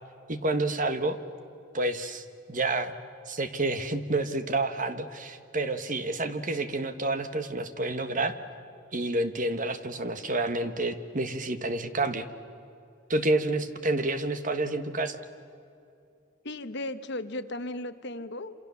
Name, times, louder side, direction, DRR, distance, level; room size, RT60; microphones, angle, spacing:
voice 1, 0.3-1.2 1.7-2.9 3.3-8.3 8.9-12.3 13.1-15.2, right 2 dB, 40° right, 10 dB, 1.4 m, -29 dB
voice 2, 16.4-18.5, left 1 dB, 55° left, 10 dB, 1.2 m, -35 dB
27.5 x 27.5 x 7.1 m, 2.6 s
head